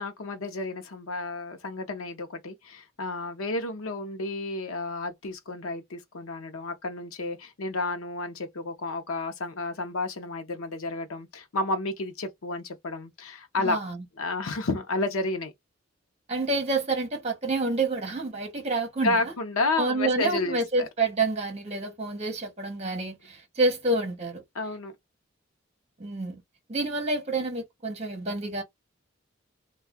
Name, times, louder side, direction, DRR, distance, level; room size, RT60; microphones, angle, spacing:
voice 1, 0.0-13.8 14.2-15.5 19.0-20.9 24.5-24.9, left 2 dB, 90° left, 0.6 m, -31 dB
voice 2, 13.6-14.0 16.3-19.3 19.8-24.4 26.0-26.4 26.7-28.6, right 2 dB, 30° right, 1.0 m, -28 dB
2.6 x 2.3 x 3.5 m
head